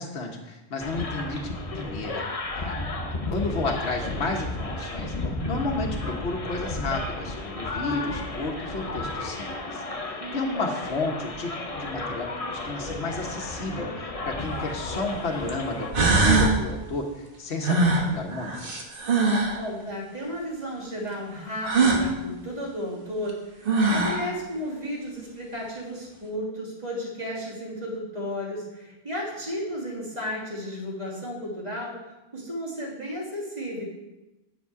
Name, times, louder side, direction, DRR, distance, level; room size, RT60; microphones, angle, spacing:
voice 1, 0.0-2.3 2.5-2.8 3.3-9.8 10.3-18.7, left 2 dB, 75° left, 0 dB, 1.4 m, -32 dB
sound 1, 0.8-15.9, left 2 dB, 35° left, 1.0 m, -33 dB
sound 2, 14.4-14.5 15.5-15.6 15.9-16.6 17.6-19.6 21.6-22.1 23.3-23.4 23.6-24.3, right 3 dB, 55° right, 1.4 m, -21 dB
voice 2, 19.6-32.0 32.3-33.8, equal, 40° right, -5 dB, 2.9 m, -33 dB
9.9 x 6.6 x 4.7 m, 1.0 s
omnidirectional pair, 1.1 m